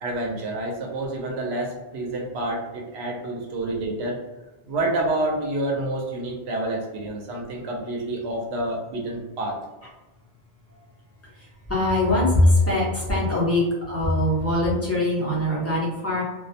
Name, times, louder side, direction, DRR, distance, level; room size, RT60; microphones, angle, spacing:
voice 1, 0.0-4.2 4.7-9.6, right 2 dB, 90° right, -1 dB, 0.8 m, -28 dB
voice 2, 11.3-16.2, left 1 dB, 15° left, -6 dB, 0.7 m, -22 dB
2.3 x 2.0 x 2.6 m, 1.1 s
omnidirectional pair, 1.1 m